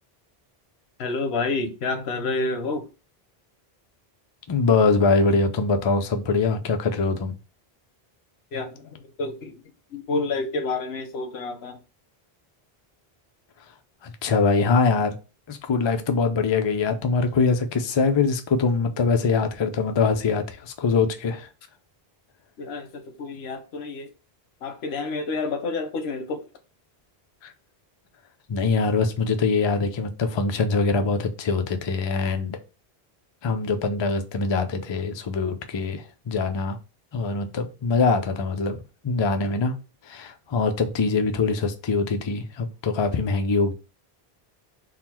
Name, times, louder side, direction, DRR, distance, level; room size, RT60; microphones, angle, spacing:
voice 1, 1.0-2.9 8.5-9.6 9.9-11.8 22.6-24.1 24.6-26.5, left 3 dB, 90° left, 1.0 m, -29 dB
voice 2, 4.5-7.3 14.0-15.2 15.5-21.5 27.4-27.5 28.5-32.6 33.4-36.8 37.1-38.8 39.0-39.7 40.1-43.7, left 4 dB, 40° left, 0.4 m, -23 dB
3.8 x 2.1 x 4.3 m
omnidirectional pair, 1.0 m